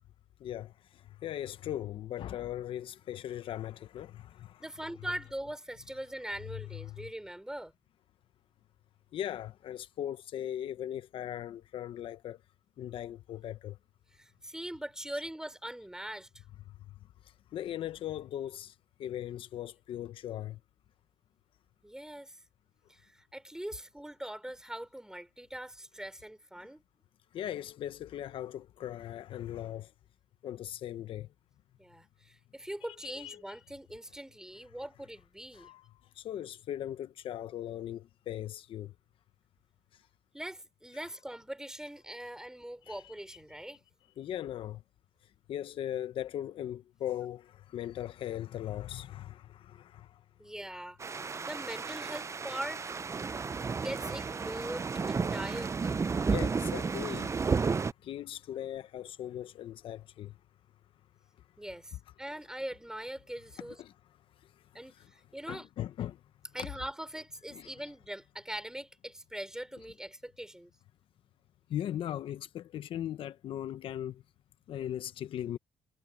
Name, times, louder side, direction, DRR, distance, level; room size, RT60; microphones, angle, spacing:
voice 1, 0.4-4.6 6.5-7.1 9.1-12.4 12.8-13.8 16.7-20.6 27.3-29.9 30.4-31.3 32.8-33.6 35.5-35.9 36.1-38.9 39.9-40.0 42.9-43.1 44.2-44.8 45.2-50.2 56.2-57.7 58.0-60.4 63.6-63.9 64.4-65.1 65.5-66.2 66.6-66.7 67.5-67.7 71.7-74.2 74.7-75.6, left 11 dB, 70° left, 1.0 m, -39 dB
voice 2, 4.6-7.7 14.2-16.4 21.8-22.4 22.9-26.8 31.8-35.7 40.3-43.8 50.4-51.0 51.5-53.0 53.8-56.0 61.6-63.8 64.7-65.7 66.5-70.7, right 1 dB, 5° right, 4.5 m, -42 dB
sound 1, 51.0-57.9, right 5 dB, 30° right, 0.7 m, -32 dB
supercardioid pair, 70°, 9 cm